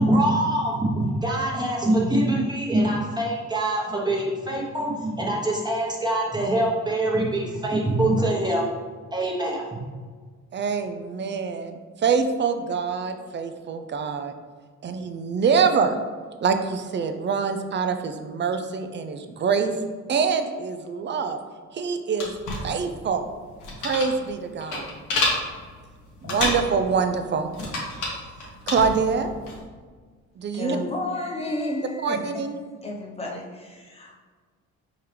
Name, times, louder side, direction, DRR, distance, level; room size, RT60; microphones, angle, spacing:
voice 1, 0.0-8.6 9.1-9.6, right 1 dB, 15° right, -4 dB, 1.1 m, -24 dB
voice 2, 10.5-14.3 14.8-16.0 16.4-19.7 20.1-21.4 21.7-22.3 22.6-23.3 23.8-25.0 26.2-27.5 28.7-29.3 30.4-30.8 32.0-32.6, right 5 dB, 40° right, 7 dB, 0.5 m, -25 dB
sound 1, 22.2-29.6, left 2 dB, 80° left, 1.3 m, -30 dB
voice 3, 30.5-32.5 32.8-34.2, left 1 dB, 20° left, -1 dB, 0.9 m, -31 dB
4.4 x 3.6 x 3.3 m, 1.5 s
cardioid pair, 90°, 30 cm